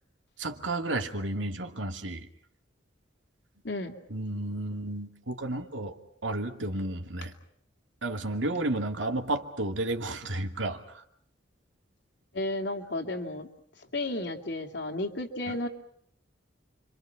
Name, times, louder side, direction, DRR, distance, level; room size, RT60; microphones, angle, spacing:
voice 1, 0.4-2.3 4.1-6.0 6.2-7.3 8.0-11.0 15.5-15.6, right 2 dB, 85° right, 5 dB, 2.3 m, -32 dB
voice 2, 3.6-4.0 12.3-13.5 13.9-15.7, left 1 dB, 65° left, 4 dB, 2.7 m, -33 dB
30.0 x 25.5 x 5.8 m, 0.65 s
head